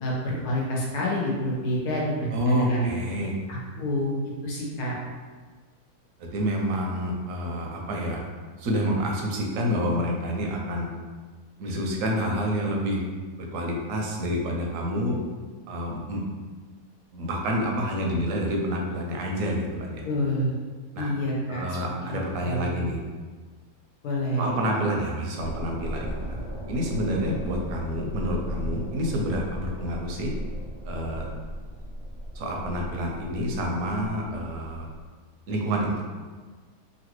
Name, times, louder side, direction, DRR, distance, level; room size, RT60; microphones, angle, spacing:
voice 1, 0.0-2.9 3.5-4.1 4.4-5.0 20.0-20.5 21.0-21.6 22.0-22.7 24.0-24.5, equal, 80° left, -3 dB, 1.3 m, -28 dB
voice 2, 2.3-3.4 6.2-8.2 8.6-10.9 11.6-13.0 13.4-15.2 15.7-16.2 17.1-20.0 20.9-21.1 21.5-23.0 24.4-26.4 26.7-30.3 30.8-31.3 32.3-34.9 35.5-36.0, equal, 65° right, 0 dB, 0.9 m, -28 dB
sound 1, 25.4-35.1, equal, 45° left, 1.3 m, -36 dB
3.1 x 2.6 x 3.0 m, 1.4 s
omnidirectional pair, 1.7 m